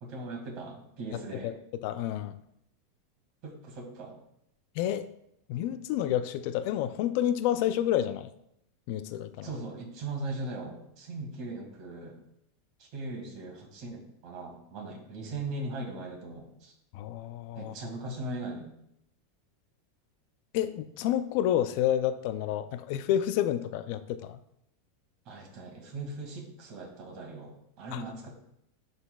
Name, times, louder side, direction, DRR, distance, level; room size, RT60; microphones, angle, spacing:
voice 1, 0.0-1.5 3.4-4.2 9.4-12.2 12.8-16.7 17.6-18.8 25.3-28.3, right 2 dB, 45° right, 1 dB, 2.0 m, -39 dB
voice 2, 1.8-2.4 4.8-5.1 5.5-8.3 8.9-9.5 16.9-17.7 20.5-24.4 27.9-28.0, left 11 dB, 55° left, 12 dB, 0.3 m, -29 dB
11.5 x 4.0 x 2.3 m, 0.76 s
supercardioid pair, 150°, 0 cm